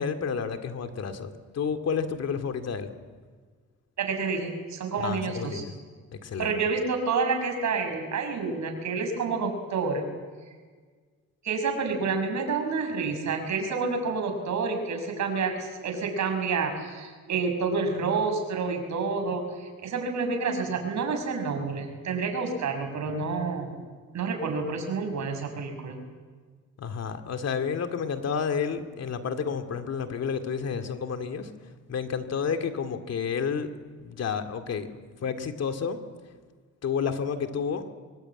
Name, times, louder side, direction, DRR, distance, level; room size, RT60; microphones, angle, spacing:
voice 1, 0.0-2.9 5.0-5.7 6.1-6.6 26.8-31.5 31.9-33.7 34.0-34.9 35.2-36.0 36.8-37.8, left 6 dB, 55° left, 7 dB, 2.4 m, -30 dB
voice 2, 4.0-5.6 6.4-10.1 11.4-23.7 24.1-26.0, right 4 dB, 65° right, 4 dB, 6.1 m, -29 dB
24.0 x 21.0 x 9.0 m, 1.5 s
cardioid pair, 90°, 30 cm